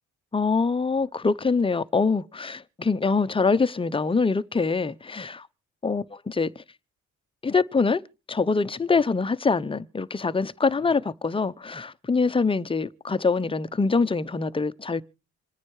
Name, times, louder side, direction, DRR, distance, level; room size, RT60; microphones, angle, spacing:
voice 1, 0.3-5.5 5.8-6.6 7.4-8.0 8.3-15.0, left 4 dB, 20° left, 0.7 m, -24 dB
27.0 x 9.6 x 3.2 m
cardioid pair, 90°, 30 cm